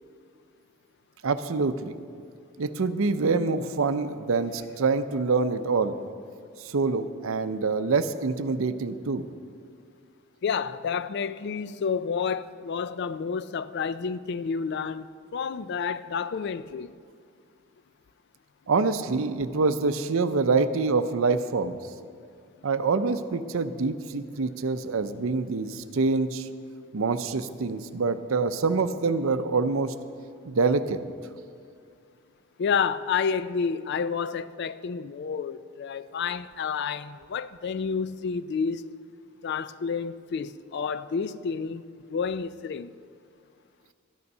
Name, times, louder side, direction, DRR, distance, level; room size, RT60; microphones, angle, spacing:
voice 1, 1.2-2.0 2.6-6.0 6.6-9.2 18.7-21.8 22.6-26.5 26.9-29.9 30.5-31.0, right 4 dB, 70° right, 0.6 m, -26 dB
voice 2, 10.4-15.1 15.3-16.9 32.6-38.9 39.4-42.9, left 6 dB, 50° left, 0.3 m, -30 dB
12.5 x 9.6 x 5.4 m
head